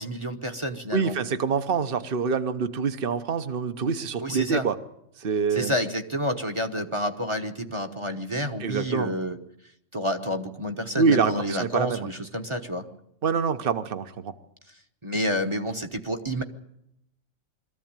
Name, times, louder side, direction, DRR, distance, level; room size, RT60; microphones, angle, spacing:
voice 1, 0.0-1.2 4.2-4.7 5.5-9.4 9.9-12.9 15.0-16.4, equal, 25° right, 6 dB, 1.1 m, -29 dB
voice 2, 0.9-4.7 5.2-5.7 8.6-9.1 11.0-12.1 13.2-14.3, right 5 dB, 50° right, 10 dB, 1.2 m, -25 dB
22.5 x 14.5 x 8.9 m, 0.80 s
omnidirectional pair, 1.2 m